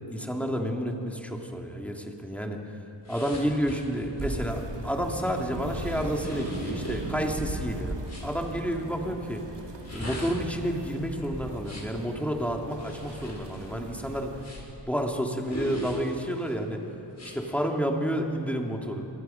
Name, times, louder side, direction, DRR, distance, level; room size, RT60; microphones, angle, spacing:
voice 1, 0.1-2.8 3.1-9.4 9.9-14.3 14.9-16.8 17.2-19.1, equal, 5° left, 1 dB, 2.3 m, -30 dB
sound 1, 3.0-8.3 9.7-12.0 12.7-14.8 15.4-16.5 17.1-17.4, equal, 35° left, 5.4 m, -40 dB
sound 2, 4.2-14.5, right 2 dB, 65° right, 2.8 m, -38 dB
26.5 x 23.0 x 5.7 m, 2.9 s
wide cardioid pair, 100°, 45 cm